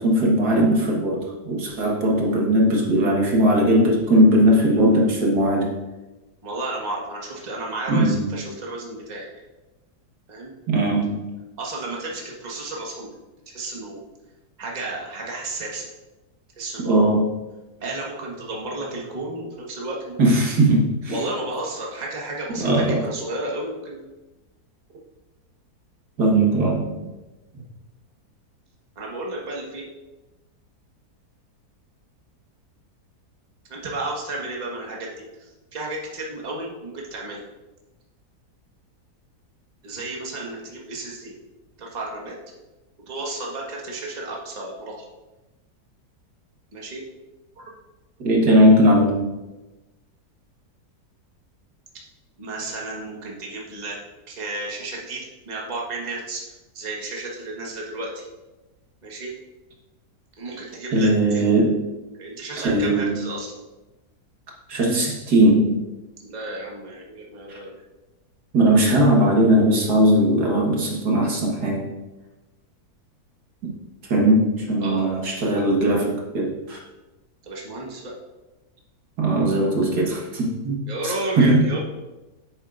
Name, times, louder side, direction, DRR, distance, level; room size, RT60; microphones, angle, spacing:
voice 1, 0.0-5.7 7.9-8.3 10.7-11.3 16.8-17.4 20.2-21.2 22.6-23.0 26.2-26.9 48.2-49.3 60.9-61.8 62.6-63.2 64.7-65.8 67.5-67.6 68.5-71.9 73.6-73.7 74.1-76.8 79.2-81.8, right 1 dB, 75° right, -1 dB, 2.1 m, -19 dB
voice 2, 6.4-9.3 10.3-10.5 11.6-13.1 13.5-14.0 14.6-15.9 16.6-17.1 17.8-20.6 21.1-24.0 28.9-29.8 33.7-35.1 35.4-37.5 39.8-41.3 41.8-42.4 43.1-44.9 46.7-47.0 52.4-54.0 54.3-58.2 59.0-59.3 60.4-61.4 62.2-63.6 66.2-67.8 74.8-75.1 77.4-78.1 80.9-81.8, right 2 dB, 25° right, -3 dB, 1.5 m, -32 dB
9.6 x 7.4 x 2.5 m, 1.1 s
omnidirectional pair, 1.7 m